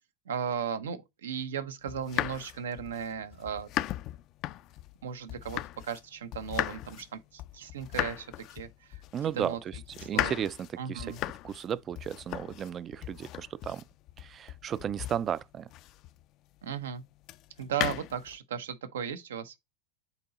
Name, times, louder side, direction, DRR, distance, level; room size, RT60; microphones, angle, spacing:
voice 1, 0.3-3.7 5.0-9.0 9.4-9.6 10.1-10.4 10.8-11.2 16.6-17.0 17.6-19.5, right 7 dB, 90° right, 0.9 m, -36 dB
sound 1, 1.9-6.0 6.3-16.2 17.2-18.4, left 15 dB, 45° left, 0.4 m, -37 dB
voice 2, 9.1-11.2 11.4-13.8 14.2-15.7, right 9 dB, 30° right, 0.3 m, -34 dB
8.1 x 2.9 x 4.0 m
hypercardioid pair, 115°, 0 cm